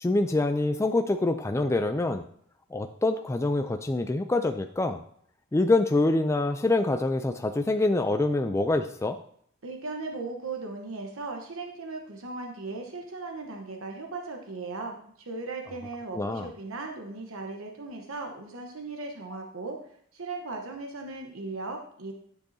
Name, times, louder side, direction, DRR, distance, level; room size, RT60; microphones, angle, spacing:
voice 1, 0.0-2.2 2.7-5.0 5.5-9.2 16.1-16.5, left 2 dB, 15° left, 7 dB, 0.3 m, -25 dB
voice 2, 9.6-19.8 20.1-22.1, right 3 dB, 70° right, 2 dB, 1.0 m, -37 dB
10.5 x 6.7 x 2.7 m, 0.64 s
head